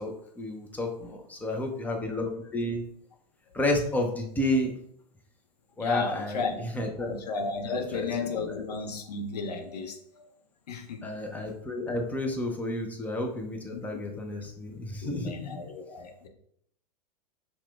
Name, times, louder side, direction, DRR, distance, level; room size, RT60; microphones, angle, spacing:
voice 1, 0.0-2.8 3.5-4.8 5.8-7.2 7.7-8.5 11.0-15.6, left 1 dB, 5° left, 2 dB, 0.6 m, -31 dB
voice 2, 5.8-6.6 7.0-10.3 10.7-11.1 13.7-13.8 15.0-16.3, left 4 dB, 70° left, 4 dB, 0.7 m, -33 dB
5.7 x 2.3 x 2.3 m, 0.68 s
figure-of-eight pair, 100°, 21 cm